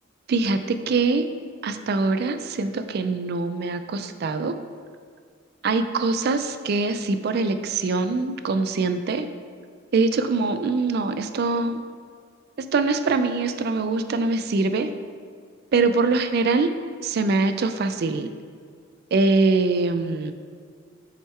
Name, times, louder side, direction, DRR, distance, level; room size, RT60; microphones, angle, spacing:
voice 1, 0.3-1.3 1.6-4.5 5.6-9.3 9.9-11.8 12.6-14.9 15.7-16.7 17.0-18.3 19.1-20.3, right 3 dB, 55° right, 9 dB, 0.4 m, -23 dB
7.2 x 3.6 x 4.3 m, 2.1 s
head